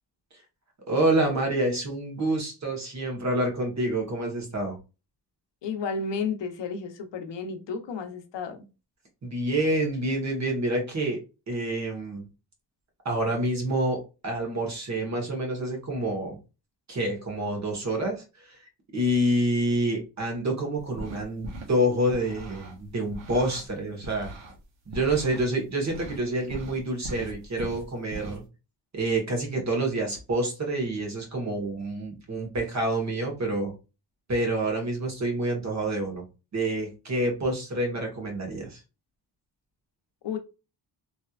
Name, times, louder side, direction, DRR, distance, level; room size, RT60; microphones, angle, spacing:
voice 1, 0.9-4.8 9.2-11.2 11.5-12.2 13.0-16.4 16.9-18.6 18.9-24.3 24.9-28.4 28.9-33.7 34.3-36.2 36.5-38.8, right 1 dB, 35° right, 1 dB, 1.4 m, -27 dB
voice 2, 5.6-8.7 40.2-40.4, left 5 dB, 70° left, 5 dB, 0.8 m, -32 dB
sound 1, 20.8-21.7 22.1-23.7 24.0-25.5 25.9-26.2 26.5-28.4, right 1 dB, 85° right, 1.1 m, -40 dB
3.2 x 2.9 x 2.4 m, 0.29 s
cardioid pair, 125°, 44 cm